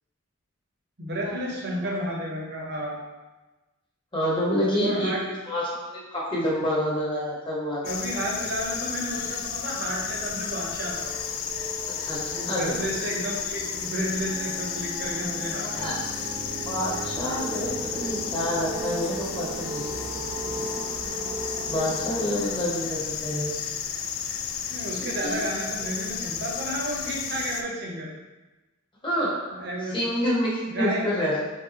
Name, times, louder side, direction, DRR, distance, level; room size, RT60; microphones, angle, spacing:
voice 1, 1.0-3.0 4.8-5.2 7.8-11.2 12.3-15.9 22.7-22.8 24.7-28.1 29.5-30.0 30.7-31.0, right 1 dB, 55° right, -2 dB, 1.0 m, -31 dB
voice 2, 4.1-5.1 5.5-7.9 12.0-12.2 12.5-12.8 15.8-16.0 16.7-19.8 21.6-23.5 25.0-25.4 29.0-29.4 29.9-31.4, equal, 25° left, -5 dB, 1.2 m, -28 dB
sound 1, 7.8-27.6, left 7 dB, 70° left, 0.4 m, -33 dB
sound 2, 10.1-22.6, right 2 dB, 30° right, 0.4 m, -37 dB
4.7 x 3.5 x 3.0 m, 1.1 s
head